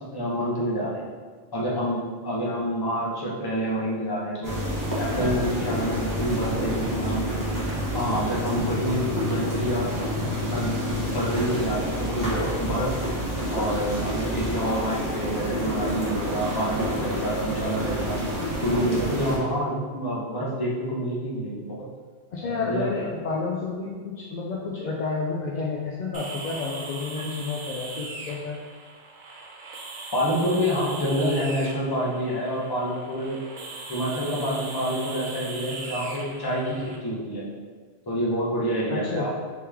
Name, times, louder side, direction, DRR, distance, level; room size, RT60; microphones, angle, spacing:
voice 1, 0.1-1.0 1.5-4.5 5.0-7.4 7.9-9.9 10.4-13.0 13.5-18.2 18.6-21.8 22.4-22.9 30.1-33.4 33.9-37.4 38.1-39.3, equal, 25° left, -5 dB, 0.6 m, -27 dB
sound 1, 4.4-19.4, equal, 20° right, 0.7 m, -28 dB
voice 2, 22.3-28.6 38.9-39.3, left 4 dB, 65° left, -4 dB, 0.4 m, -30 dB
sound 2, 26.1-37.0, right 3 dB, 60° right, 0.5 m, -39 dB
3.6 x 3.0 x 3.4 m, 1.5 s
omnidirectional pair, 1.2 m